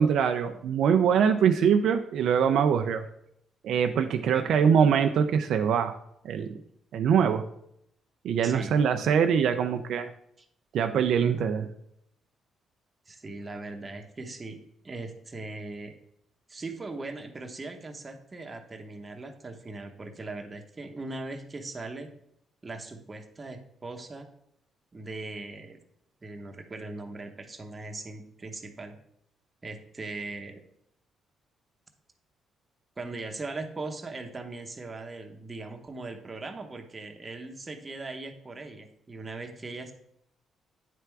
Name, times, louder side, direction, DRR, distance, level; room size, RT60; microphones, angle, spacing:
voice 1, 0.0-3.0 3.6-5.9 6.2-6.6 6.9-7.4 8.2-10.1 10.7-11.7, right 7 dB, 75° right, 7 dB, 0.4 m, -23 dB
voice 2, 8.4-8.7 13.1-14.6 14.8-16.0 16.5-22.1 22.6-24.3 24.9-25.8 26.2-29.0 29.6-30.6 33.0-39.9, right 3 dB, 25° right, 4 dB, 0.9 m, -39 dB
9.3 x 3.4 x 4.6 m, 0.73 s
cardioid pair, 90°, 0 cm